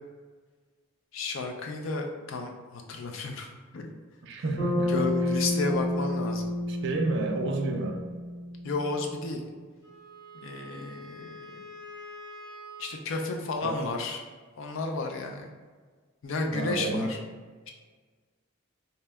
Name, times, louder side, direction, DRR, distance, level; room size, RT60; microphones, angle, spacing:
voice 1, 1.1-3.5 3.7-3.9 4.9-6.5 8.6-9.4 10.4-11.7 12.8-14.2 14.6-15.5 16.2-17.2, left 3 dB, 65° left, 3 dB, 0.4 m, -32 dB
voice 2, 4.2-5.1 6.7-8.0 13.6-13.8 16.5-17.1, right 2 dB, 55° right, 4 dB, 0.3 m, -30 dB
Bass guitar, 4.6-8.9, left 1 dB, 30° left, 1.0 m, -30 dB
Wind instrument woodwind instrument, 9.8-13.0, equal, 15° right, 0.6 m, -45 dB
2.7 x 2.1 x 3.3 m, 1.4 s
head